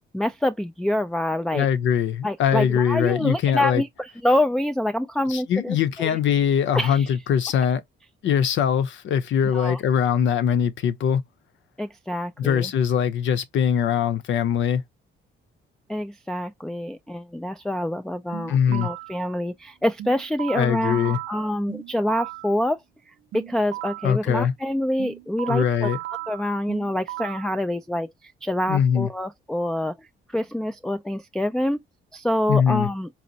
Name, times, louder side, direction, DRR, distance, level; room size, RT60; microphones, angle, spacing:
voice 1, 0.1-1.7 2.2-6.2 6.7-7.1 9.5-9.8 11.8-12.7 15.9-22.8 23.3-25.9 26.3-31.8 32.1-33.1, left 1 dB, 5° left, 0.3 m, -26 dB
voice 2, 1.5-3.8 5.3-7.8 8.2-11.2 12.4-14.8 18.5-18.9 20.5-21.2 24.0-24.5 25.5-26.0 28.7-29.1 32.5-32.9, left 8 dB, 70° left, 0.7 m, -22 dB
sound 1, 18.3-19.2 20.0-22.5 23.3-24.2 25.0-27.5, right 16 dB, 75° right, 0.5 m, -36 dB
4.0 x 2.0 x 2.7 m
cardioid pair, 90°, 20 cm